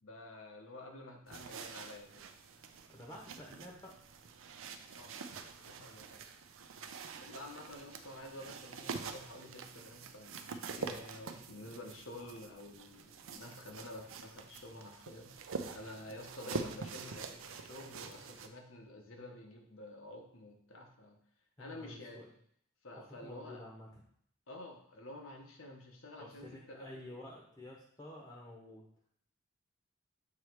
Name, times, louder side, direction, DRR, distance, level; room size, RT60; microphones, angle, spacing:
voice 1, 0.0-2.2 4.9-5.3 5.6-6.3 7.2-21.2 21.6-22.2 22.8-23.6 24.5-27.2, left 1 dB, 80° left, 2 dB, 1.2 m, -50 dB
sound 1, 1.3-18.5, right 5 dB, 80° right, 0.5 m, -46 dB
voice 2, 2.9-3.9 21.6-22.3 23.0-23.9 26.2-28.8, left 1 dB, 20° left, -2 dB, 0.9 m, -50 dB
7.2 x 3.1 x 4.6 m, 0.66 s
head